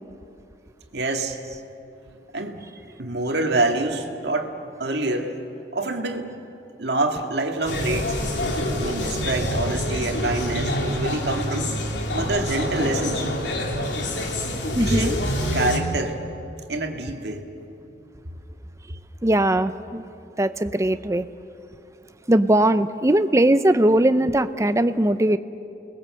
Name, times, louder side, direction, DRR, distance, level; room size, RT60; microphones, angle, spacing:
voice 1, 0.9-1.4 2.3-2.6 3.0-5.4 5.7-6.3 6.8-8.2 8.8-11.8 12.1-13.3 14.8-15.2 15.5-16.2 16.7-17.4, right 2 dB, 65° right, 4 dB, 2.0 m, -26 dB
sound 1, 7.7-15.8, left 1 dB, 80° left, 2.8 m, -26 dB
voice 2, 14.7-15.2 19.2-20.0 20.4-21.3 22.3-25.4, right 1 dB, 15° right, 12 dB, 0.6 m, -19 dB
29.0 x 20.5 x 7.8 m, 2.7 s
head